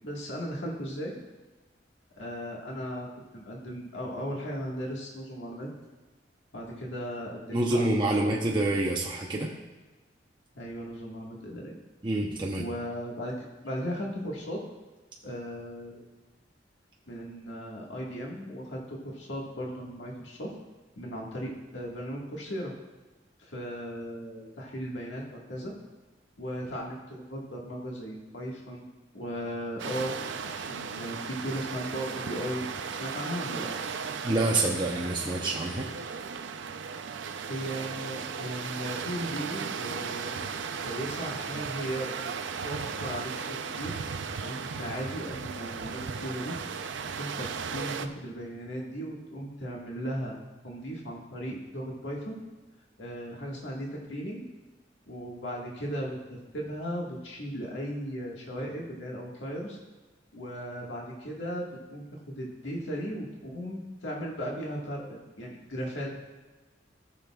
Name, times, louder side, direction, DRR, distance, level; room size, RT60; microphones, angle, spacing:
voice 1, 0.0-1.1 2.1-3.1 3.3-5.7 6.5-7.9 8.2-8.3 10.5-11.7 12.5-14.6 15.2-16.0 17.1-20.5 21.0-22.7 23.4-25.7 26.4-30.1 30.4-32.7 33.0-33.7 37.5-40.5 40.8-42.3 42.6-43.9 44.4-46.5 47.2-50.3 50.6-52.4 53.0-54.4 55.1-59.8 60.3-66.1, equal, 85° left, -3 dB, 1.7 m, -37 dB
voice 2, 7.5-9.5 12.0-12.6 34.2-35.9, right 2 dB, 25° right, -2 dB, 0.8 m, -27 dB
sound 1, 29.8-48.1, right 6 dB, 85° right, 0.5 m, -36 dB
17.5 x 6.7 x 2.4 m, 1.2 s
head